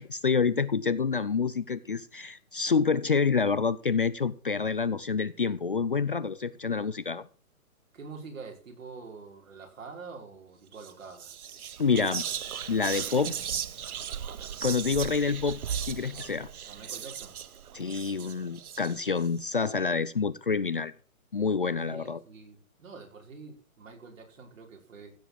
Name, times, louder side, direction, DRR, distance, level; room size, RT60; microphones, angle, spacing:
voice 1, 0.0-7.2 11.8-12.2 12.7-13.3 14.6-16.5 17.7-20.9 21.3-22.2, left 5 dB, 40° left, 0.5 m, -27 dB
voice 2, 7.9-11.3 16.6-17.4 21.9-25.1, right 4 dB, 60° right, 5.3 m, -46 dB
Whispering, 10.7-10.9 11.2-19.3, right 8 dB, 85° right, 1.1 m, -37 dB
15.5 x 7.4 x 6.1 m
hypercardioid pair, 175°, 43 cm